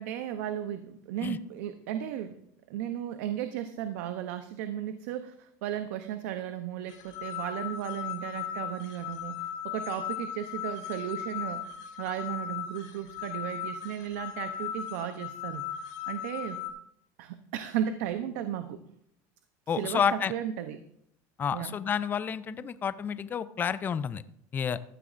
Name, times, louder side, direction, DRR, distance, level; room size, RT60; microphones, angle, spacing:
voice 1, 0.0-2.4 2.7-11.7 12.0-16.6 17.2-18.8 19.7-20.8 21.5-21.7, right 10 dB, 80° right, 9 dB, 0.8 m, -35 dB
sound 1, 6.9-16.7, left 10 dB, 65° left, 3.7 m, -37 dB
voice 2, 19.7-20.3 21.4-24.2 24.5-24.8, left 7 dB, 20° left, 14 dB, 0.4 m, -30 dB
15.0 x 12.0 x 2.6 m, 0.72 s
cardioid pair, 145°, 9 cm